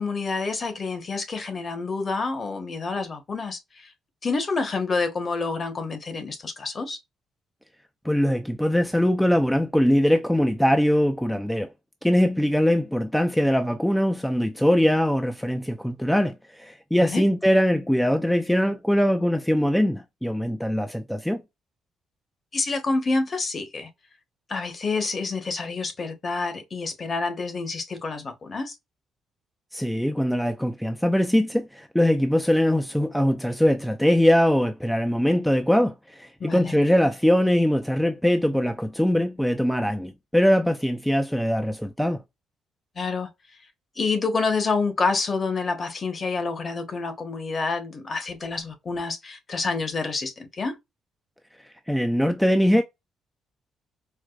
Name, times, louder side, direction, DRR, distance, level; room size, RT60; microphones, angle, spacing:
voice 1, 0.0-3.9 4.2-7.0 17.0-17.2 22.5-23.9 24.5-28.7 36.4-36.7 43.0-43.3 44.0-50.8, left 4 dB, 40° left, 1.0 m, -28 dB
voice 2, 8.0-11.7 12.0-21.4 29.7-42.2 51.9-52.8, equal, 5° left, 0.4 m, -22 dB
4.6 x 2.1 x 2.3 m
cardioid pair, 90°, 0 cm